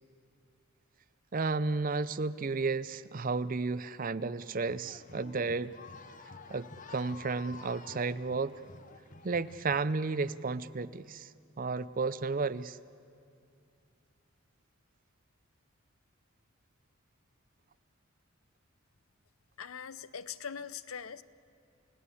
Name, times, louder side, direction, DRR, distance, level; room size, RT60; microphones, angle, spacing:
voice 1, 1.3-5.7 6.5-8.5 9.2-11.3 11.6-12.8, right 4 dB, 40° right, 15 dB, 0.6 m, -32 dB
sound 1, 4.7-9.8, left 4 dB, 40° left, 0.9 m, -50 dB
voice 2, 19.6-21.2, left 7 dB, 80° left, 15 dB, 0.7 m, -42 dB
29.5 x 17.5 x 8.4 m, 2.5 s
head